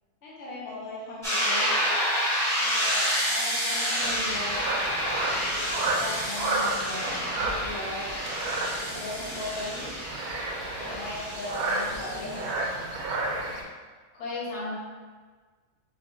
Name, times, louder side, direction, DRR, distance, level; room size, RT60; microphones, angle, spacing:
voice 1, 0.2-1.7 2.5-4.7 5.5-8.1 8.8-9.9 10.8-12.5, left 2 dB, 50° left, -6 dB, 1.1 m, -38 dB
sound 1, 1.2-12.9, equal, ahead, 1.1 m, -29 dB
sound 2, 4.0-13.6, right 2 dB, 75° right, 1.1 m, -32 dB
voice 2, 14.1-14.8, left 3 dB, 80° left, -7 dB, 1.8 m, -34 dB
6.9 x 2.6 x 2.5 m, 1.4 s
omnidirectional pair, 1.6 m